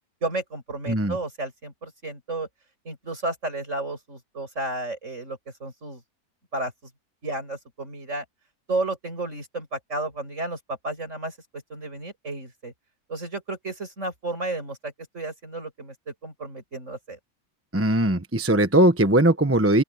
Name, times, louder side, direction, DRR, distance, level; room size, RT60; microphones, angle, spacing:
voice 1, 0.2-2.5 2.8-6.0 6.5-6.7 7.2-8.2 8.7-11.4 11.7-12.7 13.1-17.2, right 2 dB, 50° right, 7.7 m, -32 dB
voice 2, 17.7-19.8, right 1 dB, 10° right, 0.9 m, -19 dB
open air
omnidirectional pair, 1.6 m